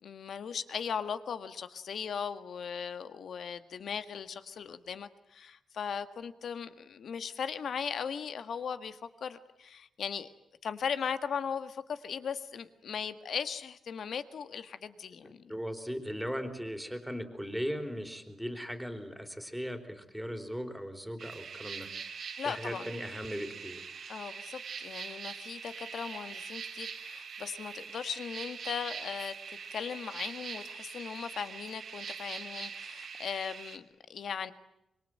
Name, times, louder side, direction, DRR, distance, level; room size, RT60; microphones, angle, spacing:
voice 1, 0.0-10.3 10.6-15.5 22.4-22.9 24.1-34.5, left 7 dB, 65° left, 11 dB, 1.7 m, -38 dB
voice 2, 15.2-21.9 22.5-23.9, equal, ahead, 7 dB, 3.8 m, -38 dB
sound 1, 21.2-33.8, right 6 dB, 65° right, 2.7 m, -43 dB
26.0 x 23.0 x 9.1 m, 0.83 s
cardioid pair, 100°, 0 cm